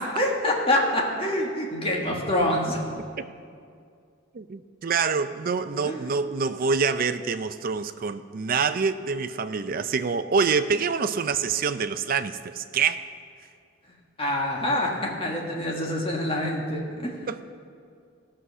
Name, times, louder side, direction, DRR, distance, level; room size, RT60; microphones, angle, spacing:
voice 1, 0.2-2.8 5.8-6.1 14.2-17.2, left 1 dB, 30° left, -1 dB, 1.6 m, -26 dB
voice 2, 4.3-13.1 17.3-17.4, right 5 dB, 45° right, 10 dB, 0.4 m, -26 dB
17.5 x 6.3 x 5.5 m, 2.3 s
head